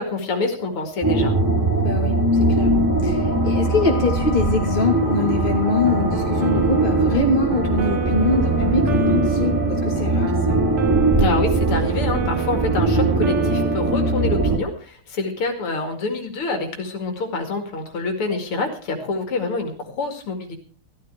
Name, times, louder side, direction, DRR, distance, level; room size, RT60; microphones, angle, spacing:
voice 1, 0.0-1.4 11.2-20.6, left 3 dB, 90° left, 5 dB, 3.1 m, -26 dB
sound 1, 1.0-14.6, right 2 dB, 10° right, 2.9 m, -21 dB
voice 2, 1.8-2.7 3.0-10.6, left 3 dB, 25° left, 1 dB, 3.0 m, -23 dB
sound 2, 5.9-14.6, right 6 dB, 85° right, 2.2 m, -29 dB
14.5 x 13.5 x 4.7 m, 0.38 s
omnidirectional pair, 2.4 m